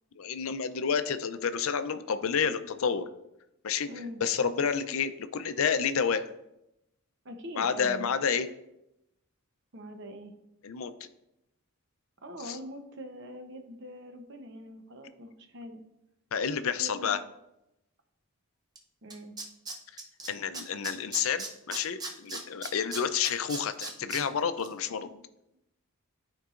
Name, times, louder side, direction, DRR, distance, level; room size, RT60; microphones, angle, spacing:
voice 1, 0.2-3.1 3.6-3.9 4.2-6.3 7.6-8.5 10.6-10.9 12.5-12.6 16.3-17.2 20.3-25.2, left 6 dB, 70° left, 11 dB, 0.5 m, -29 dB
voice 2, 3.8-4.2 7.2-8.1 9.7-10.3 12.2-15.8 16.8-17.1 19.0-19.3, equal, 55° right, 5 dB, 0.8 m, -43 dB
Tools, 18.8-18.9 19.1-20.3 20.5-24.2 24.6-24.7, right 3 dB, 20° right, 0.7 m, -37 dB
12.0 x 4.6 x 2.5 m, 0.87 s
head